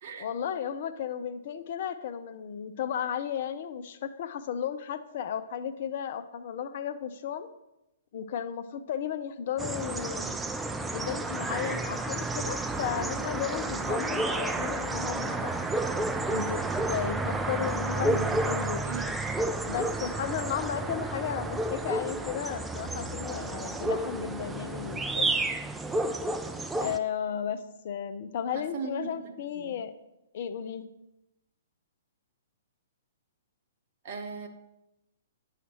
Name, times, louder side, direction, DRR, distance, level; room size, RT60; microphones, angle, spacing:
voice 1, 0.2-7.5 8.1-10.3 10.9-15.5 16.3-16.6 16.9-18.9 19.7-25.3 26.8-29.9 30.3-30.9, left 8 dB, 50° left, 10 dB, 0.5 m, -34 dB
sound 1, 9.6-27.0, right 2 dB, 5° right, 0.4 m, -31 dB
voice 2, 18.8-19.1 28.5-29.8 34.0-34.5, right 5 dB, 45° right, 5 dB, 0.8 m, -38 dB
9.2 x 5.7 x 2.9 m, 0.93 s
figure-of-eight pair, 120°, 0 cm